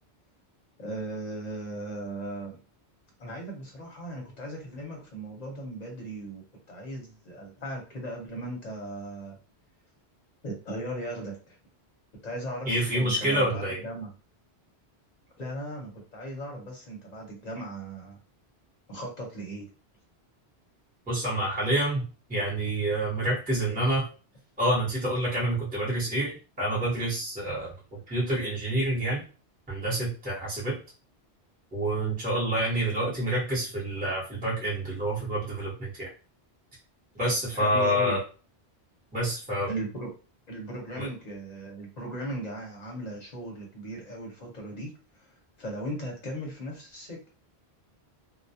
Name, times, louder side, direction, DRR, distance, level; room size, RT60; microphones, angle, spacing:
voice 1, 0.8-2.6 3.2-6.4 6.7-9.4 10.4-11.6 12.2-14.1 15.4-18.2 18.9-19.7 37.5-38.2 39.7-40.1 40.5-45.3 45.6-47.3, right 1 dB, 45° left, 0 dB, 0.8 m, -37 dB
voice 2, 12.7-13.8 21.1-24.1 24.6-29.2 29.7-30.8 31.7-36.1 37.1-38.2 39.1-39.7 41.0-41.1, right 1 dB, 10° right, -7 dB, 0.8 m, -28 dB
2.2 x 2.1 x 2.7 m, 0.36 s
omnidirectional pair, 1.1 m